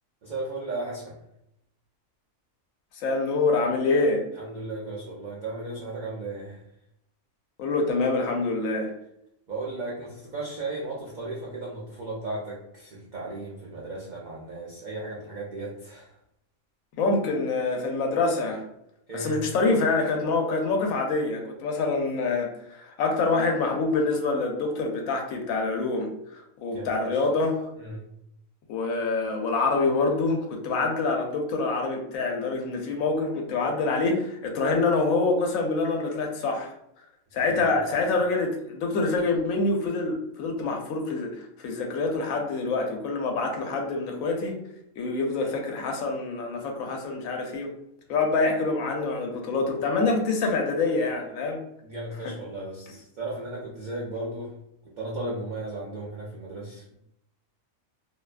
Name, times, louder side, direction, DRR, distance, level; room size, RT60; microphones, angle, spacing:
voice 1, 0.2-1.2 4.4-6.6 9.5-16.2 19.1-19.4 26.7-27.3 27.8-28.1 37.4-37.6 38.0-38.1 51.8-54.5 55.0-56.8, right 2 dB, 90° right, -5 dB, 0.4 m, -35 dB
voice 2, 2.9-4.2 7.6-8.9 17.0-18.6 19.1-27.7 28.7-36.7 37.3-44.6 45.0-47.7 48.1-51.6 52.2-52.3, left 3 dB, 80° left, 2 dB, 1.0 m, -26 dB
2.6 x 2.2 x 2.4 m, 0.79 s
omnidirectional pair, 1.4 m